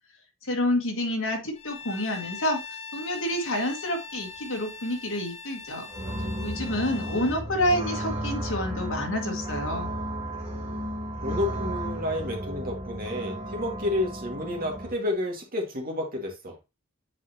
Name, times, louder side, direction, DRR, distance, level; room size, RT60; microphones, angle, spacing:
voice 1, 0.4-2.6 2.9-5.9 6.4-9.9, left 1 dB, 65° left, 1.9 m, -28 dB
Bowed string instrument, 1.6-7.5, left 5 dB, 30° left, 0.6 m, -41 dB
sound 1, 5.9-14.9, equal, 25° right, 2.2 m, -34 dB
voice 2, 6.7-7.4 11.2-16.6, left 1 dB, 40° right, 1.9 m, -31 dB
8.1 x 4.5 x 2.8 m
head